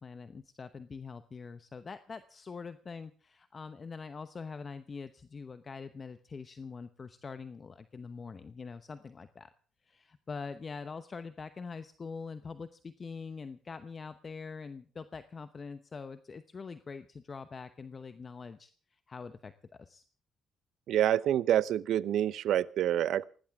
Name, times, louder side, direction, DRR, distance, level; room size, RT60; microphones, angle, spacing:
voice 1, 0.0-9.5 9.8-20.0, left 5 dB, 40° left, 11 dB, 0.9 m, -44 dB
voice 2, 20.9-23.2, right 11 dB, 75° right, 18 dB, 0.7 m, -27 dB
20.5 x 18.0 x 3.6 m, 0.40 s
cardioid pair, 90°, 0 cm